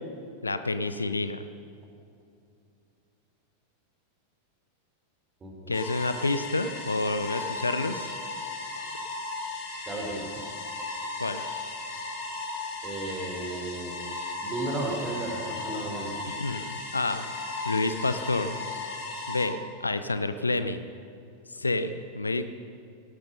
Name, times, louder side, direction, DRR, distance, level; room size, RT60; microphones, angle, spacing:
voice 1, 0.4-1.5 5.7-8.1 11.2-11.4 16.3-17.2 17.6-18.6 19.3-20.8 21.6-22.4, left 2 dB, 80° left, 11 dB, 0.7 m, -29 dB
voice 2, 5.4-5.7 9.9-10.3 12.8-14.0 14.4-16.2, right 2 dB, 20° right, 0 dB, 3.6 m, -34 dB
sound 1, 5.7-19.4, left 3 dB, 50° left, 3.3 m, -36 dB
17.5 x 12.0 x 5.4 m, 2.5 s
figure-of-eight pair, 90°, 0 cm